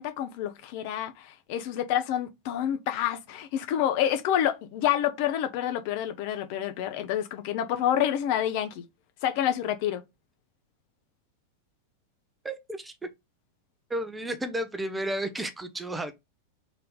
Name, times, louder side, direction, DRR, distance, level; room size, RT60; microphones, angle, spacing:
voice 1, 0.0-8.8 9.2-10.0, left 10 dB, 45° left, 0.6 m, -28 dB
voice 2, 12.4-13.1 13.9-16.1, right 1 dB, 10° right, 0.6 m, -32 dB
3.9 x 2.7 x 3.5 m
figure-of-eight pair, 90°, 0 cm